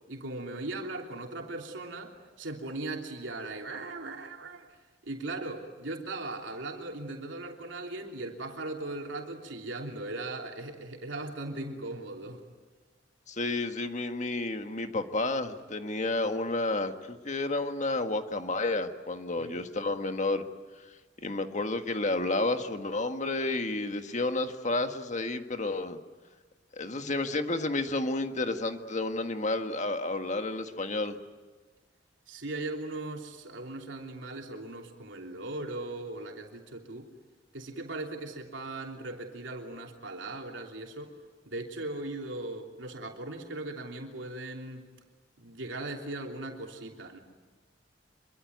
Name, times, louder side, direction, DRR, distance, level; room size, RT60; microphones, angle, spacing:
voice 1, 0.1-4.7 5.0-12.4 19.4-19.6 32.3-37.1 37.5-41.1 41.4-44.9 45.4-47.2, right 2 dB, 85° right, 2 dB, 3.1 m, -38 dB
voice 2, 13.3-20.4 21.2-26.0 26.7-31.2, left 2 dB, 40° left, 7 dB, 1.6 m, -31 dB
26.0 x 23.5 x 9.4 m, 1.3 s
head